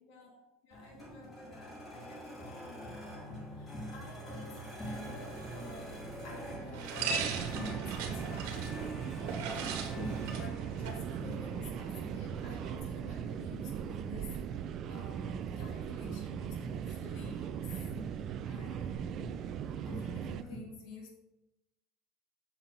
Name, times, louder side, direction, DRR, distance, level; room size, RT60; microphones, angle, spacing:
voice 1, 0.0-17.9 18.5-19.2 19.8-21.1, left 3 dB, 60° left, -2 dB, 2.2 m, -51 dB
sound 1, 0.7-20.6, equal, 15° left, 2.0 m, -46 dB
sound 2, 4.8-12.8, right 5 dB, 70° right, 1.4 m, -41 dB
sound 3, 7.1-20.4, right 8 dB, 35° right, 0.3 m, -39 dB
7.2 x 7.0 x 4.0 m, 0.92 s
cardioid pair, 165°, 0 cm